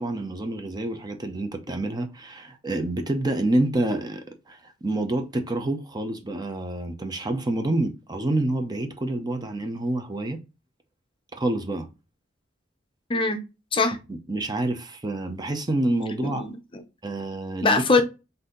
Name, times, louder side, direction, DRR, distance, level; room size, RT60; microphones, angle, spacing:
voice 1, 0.0-10.4 11.3-11.9 14.3-16.4 17.0-17.8, right 1 dB, 20° right, 0.6 m, -27 dB
voice 2, 13.1-13.4 13.7-14.0 16.2-16.8 17.6-18.0, left 3 dB, 25° left, 0.6 m, -22 dB
4.0 x 2.7 x 3.7 m
head